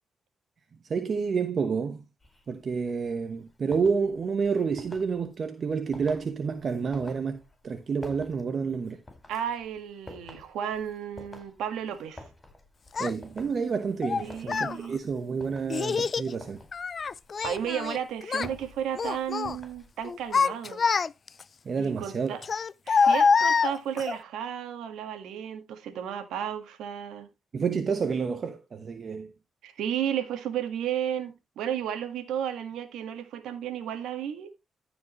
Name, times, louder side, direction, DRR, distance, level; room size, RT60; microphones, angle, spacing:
voice 1, 0.9-2.0 2.5-9.0 13.0-16.6 21.6-22.4 27.5-29.3, right 5 dB, 55° right, 1.1 m, -29 dB
sound 1, 2.2-20.4, left 2 dB, 25° left, 4.5 m, -51 dB
voice 2, 9.3-12.3 14.2-15.0 17.4-20.8 21.8-22.4 22.9-27.3 29.6-34.5, right 9 dB, 85° right, 1.7 m, -33 dB
Child speech kid speaking, 12.9-13.1 14.0-14.8 15.7-16.3 16.7-18.0 18.2-18.5 19.0-19.6 20.0-21.4 22.4-24.1, left 5 dB, 50° left, 0.4 m, -25 dB
14.5 x 5.2 x 3.1 m
supercardioid pair, 55°, 0 cm